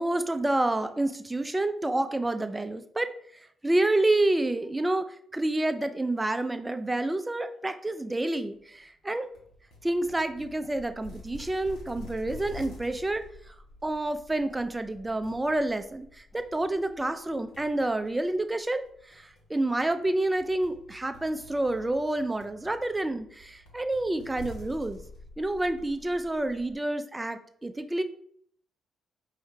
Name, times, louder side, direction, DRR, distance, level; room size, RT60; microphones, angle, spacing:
voice 1, 0.0-3.1 3.6-9.3 9.8-13.6 13.8-25.0 25.4-28.0, right 2 dB, 20° right, 9 dB, 0.5 m, -28 dB
sound 1, 9.3-26.8, left 1 dB, 70° left, 1.1 m, -49 dB
4.5 x 2.7 x 3.6 m, 0.63 s
hypercardioid pair, 45°, 0 cm